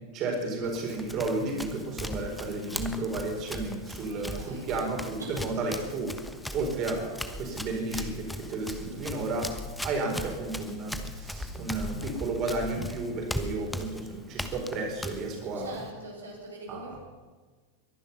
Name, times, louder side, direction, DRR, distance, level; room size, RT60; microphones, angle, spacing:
voice 1, 0.1-6.1 6.5-9.5 9.8-15.8 16.7-17.0, right 2 dB, 35° right, 1 dB, 4.4 m, -32 dB
Run, 0.6-15.9, left 1 dB, 5° left, 1.2 m, -39 dB
voice 2, 4.0-4.8 5.2-5.6 15.5-17.0, right 2 dB, 75° right, -2 dB, 3.9 m, -43 dB
22.5 x 11.0 x 5.7 m, 1.3 s
figure-of-eight pair, 90°, 0 cm